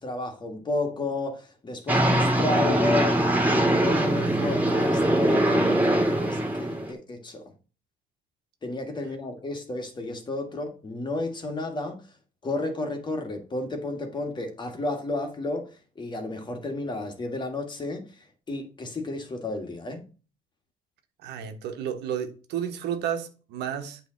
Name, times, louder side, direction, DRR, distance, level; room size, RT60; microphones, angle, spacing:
voice 1, 0.0-7.5 8.6-12.0 12.4-20.0, left 2 dB, 25° left, 1.9 m, -32 dB
sound 1, 1.9-6.9, right 1 dB, 10° right, 2.2 m, -22 dB
voice 2, 21.2-24.0, right 9 dB, 80° right, 1.3 m, -32 dB
8.4 x 3.5 x 6.3 m
cardioid pair, 110°, 17 cm